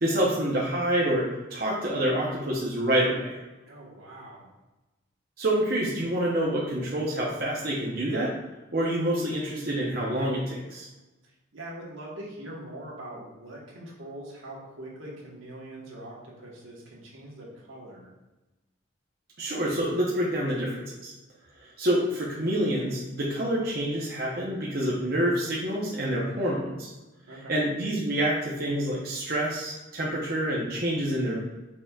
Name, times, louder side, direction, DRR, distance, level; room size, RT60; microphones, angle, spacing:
voice 1, 0.0-3.4 5.4-8.3 8.7-10.9 19.4-21.1 21.6-26.9 27.5-31.4, right 1 dB, 50° right, -5 dB, 0.8 m, -27 dB
voice 2, 3.6-4.5 11.5-18.1 27.3-27.6, right 1 dB, 85° right, -3 dB, 1.4 m, -42 dB
4.9 x 4.3 x 2.4 m, 1.1 s
head